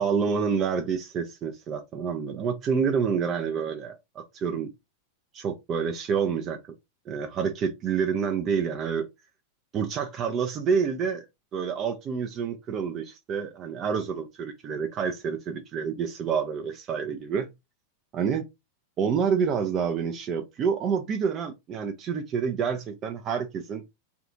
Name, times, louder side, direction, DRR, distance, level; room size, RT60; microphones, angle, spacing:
voice 1, 0.0-4.7 5.3-6.7 7.1-9.1 9.7-11.2 11.5-17.5 18.1-18.4 19.0-23.8, right 6 dB, 30° right, 0.5 m, -28 dB
3.4 x 2.4 x 2.8 m
figure-of-eight pair, 90°, 0 cm